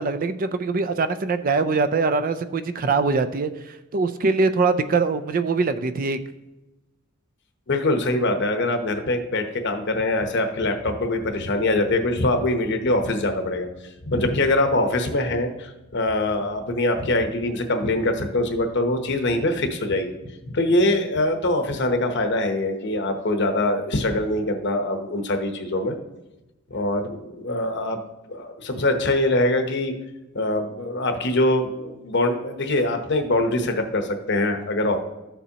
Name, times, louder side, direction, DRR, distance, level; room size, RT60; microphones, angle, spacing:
voice 1, 0.0-6.2, right 4 dB, 40° right, 11 dB, 0.4 m, -23 dB
voice 2, 7.7-13.7 14.1-26.0 26.7-28.0 28.3-29.9 30.3-35.0, left 1 dB, 55° left, 6 dB, 0.9 m, -23 dB
13.0 x 7.0 x 2.9 m, 1.0 s
head